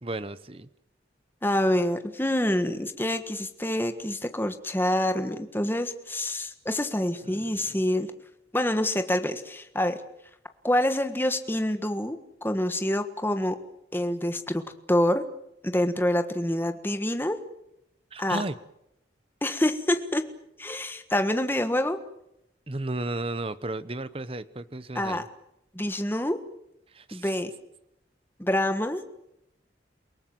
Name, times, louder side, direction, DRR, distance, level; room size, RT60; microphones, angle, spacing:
voice 1, 0.0-0.7 7.2-7.8 18.1-18.6 22.7-25.3 26.9-27.3, right 2 dB, 30° right, 15 dB, 0.9 m, -34 dB
voice 2, 1.4-8.1 8.5-10.0 10.6-13.5 13.9-14.6 14.9-15.2 15.6-17.4 18.2-18.4 19.4-20.2 20.6-22.0 24.9-25.2 25.7-26.4 27.1-27.5 28.4-29.0, left 1 dB, 10° left, 8 dB, 1.5 m, -26 dB
29.0 x 18.5 x 7.7 m, 0.84 s
head